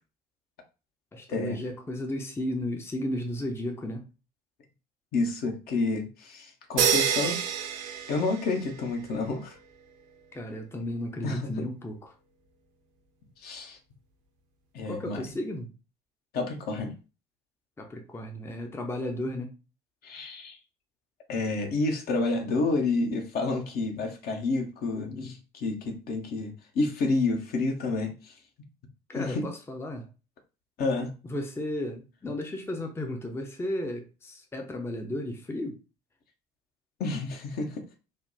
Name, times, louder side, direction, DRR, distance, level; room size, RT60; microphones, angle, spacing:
voice 1, 1.1-4.1 10.3-12.1 14.9-15.7 17.8-19.5 29.1-30.1 31.2-35.8, left 1 dB, 10° left, 0.5 m, -34 dB
voice 2, 5.1-7.4 8.1-9.6 11.2-11.5 13.4-13.8 14.7-15.2 16.3-16.9 20.0-20.6 21.3-28.4 29.2-29.4 30.8-31.1 37.0-37.8, left 3 dB, 50° left, 0.8 m, -29 dB
sound 1, 6.8-8.9, right 8 dB, 60° right, 0.6 m, -27 dB
3.3 x 2.2 x 2.6 m
figure-of-eight pair, 55°, 20 cm